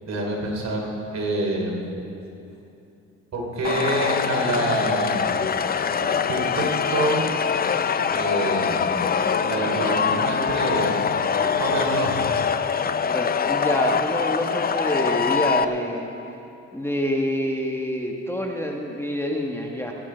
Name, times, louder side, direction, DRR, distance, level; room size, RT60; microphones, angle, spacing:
voice 1, 0.0-1.9 3.3-5.4 6.0-7.3 8.1-8.8 9.4-11.1 11.4-12.2, right 1 dB, 60° right, -1 dB, 3.2 m, -27 dB
sound 1, 3.6-15.6, left 6 dB, 30° left, 0.5 m, -24 dB
voice 2, 13.1-16.1 16.7-19.9, equal, 10° left, 1 dB, 1.3 m, -26 dB
19.5 x 10.0 x 4.4 m, 2.8 s
cardioid pair, 90°, 30 cm